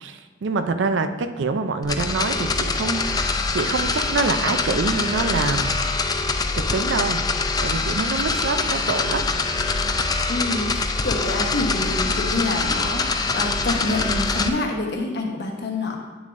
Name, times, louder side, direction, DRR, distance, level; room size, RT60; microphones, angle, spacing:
voice 1, 0.0-5.8 6.5-7.2 7.6-9.3, right 4 dB, 65° right, 9 dB, 0.5 m, -25 dB
sound 1, 1.8-14.5, left 3 dB, 20° left, 0.4 m, -24 dB
voice 2, 10.3-16.0, left 2 dB, 60° left, 1 dB, 1.1 m, -27 dB
8.3 x 7.0 x 2.6 m, 1.4 s
head